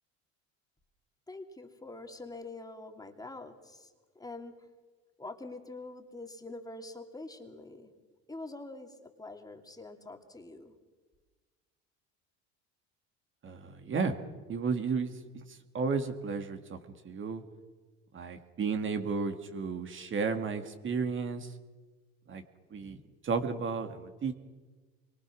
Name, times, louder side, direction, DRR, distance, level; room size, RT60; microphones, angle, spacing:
voice 1, 1.3-4.5 5.2-10.7, left 2 dB, 10° left, 4 dB, 2.9 m, -45 dB
voice 2, 13.4-14.2 14.5-16.8 17.0-17.4 18.1-21.5 22.3-22.4 22.7-23.0 23.2-24.3, right 5 dB, 35° right, 7 dB, 2.2 m, -33 dB
26.0 x 23.5 x 6.3 m, 1.3 s
supercardioid pair, 100°, 33 cm